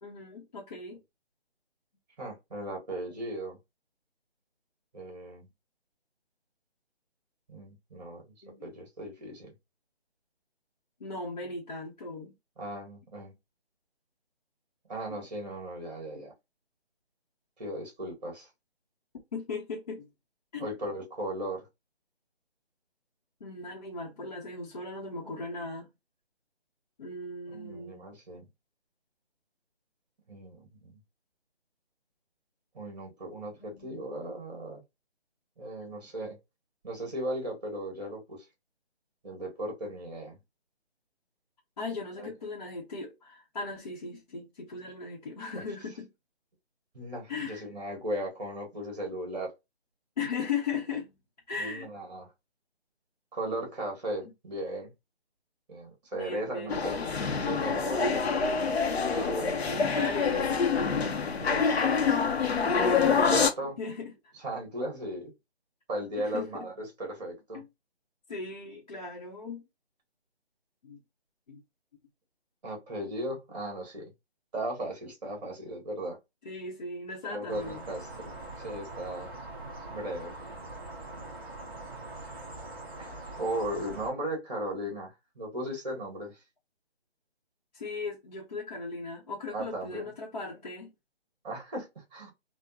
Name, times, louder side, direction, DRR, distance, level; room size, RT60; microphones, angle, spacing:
voice 1, 0.0-1.0 3.1-3.3 8.4-8.7 11.0-12.3 15.1-15.2 19.3-20.1 20.5-20.7 23.4-25.9 27.0-28.1 33.7-34.1 41.8-46.1 47.3-47.7 50.2-51.1 51.5-51.9 56.1-56.8 58.0-58.8 59.5-61.0 63.8-64.3 66.2-66.7 67.5-67.7 68.3-69.6 70.8-71.0 71.5-71.6 76.4-77.8 81.1-81.2 83.1-83.2 87.7-90.9, left 3 dB, 40° left, 0.8 m, -38 dB
voice 2, 2.2-3.6 4.9-5.5 7.5-8.2 8.6-9.5 12.6-13.3 14.9-16.3 17.6-18.5 20.6-21.7 27.5-28.5 30.3-31.0 32.7-34.8 35.6-36.4 36.8-38.5 39.2-40.4 42.2-42.3 45.6-45.7 46.9-49.5 51.6-52.3 53.3-54.9 55.7-57.0 57.4-58.5 58.9-59.7 61.4-62.2 63.0-63.8 64.4-65.3 65.9-67.6 72.6-74.1 74.5-76.2 77.3-79.3 79.9-80.4 83.0-86.4 89.5-90.1 91.4-92.3, right 1 dB, 40° right, 1.7 m, -37 dB
sound 1, 56.7-63.5, left 5 dB, 75° left, 0.7 m, -26 dB
sound 2, 77.5-84.1, right 2 dB, 20° right, 0.8 m, -43 dB
3.8 x 2.1 x 2.7 m
hypercardioid pair, 165°, 32 cm